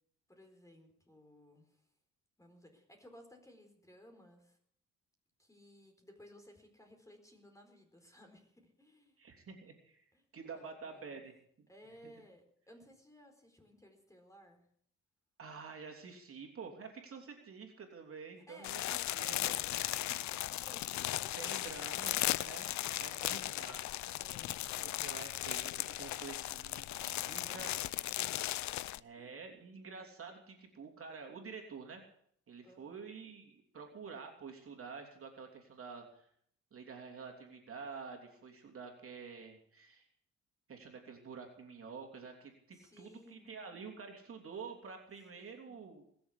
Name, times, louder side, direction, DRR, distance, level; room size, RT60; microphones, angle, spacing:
voice 1, 0.3-1.9 2.4-4.6 5.4-9.2 10.1-10.2 10.5-11.2 11.7-14.7 18.5-21.6 24.2-25.1 26.9-28.8 29.2-29.3 32.6-33.0 42.7-43.5 45.3-45.8, left 1 dB, 10° left, 4 dB, 4.2 m, -59 dB
voice 2, 9.2-10.1 10.3-11.7 12.0-12.1 15.4-19.5 21.4-22.1 22.4-22.6 23.0-24.0 24.8-26.9 27.3-27.7 28.9-32.0 32.5-36.3 36.7-40.1 40.7-46.1, right 5 dB, 45° right, 2 dB, 3.1 m, -49 dB
sound 1, 18.6-29.0, left 15 dB, 70° left, 0.5 m, -37 dB
20.5 x 7.2 x 8.4 m, 0.67 s
cardioid pair, 90°, 30 cm